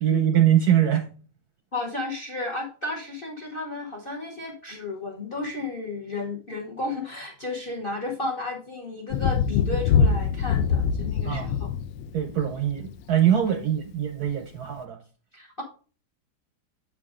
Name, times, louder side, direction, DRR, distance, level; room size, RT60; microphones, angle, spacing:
voice 1, 0.0-1.0 11.2-11.5 12.1-15.0, right 10 dB, 65° right, 6 dB, 1.0 m, -22 dB
voice 2, 1.7-11.7 13.5-13.6 15.3-15.6, left 2 dB, 40° left, 3 dB, 0.8 m, -33 dB
Thunder, 9.1-13.0 14.3-14.4, left 6 dB, 75° left, 1.2 m, -24 dB
7.4 x 4.9 x 3.6 m, 0.38 s
omnidirectional pair, 2.2 m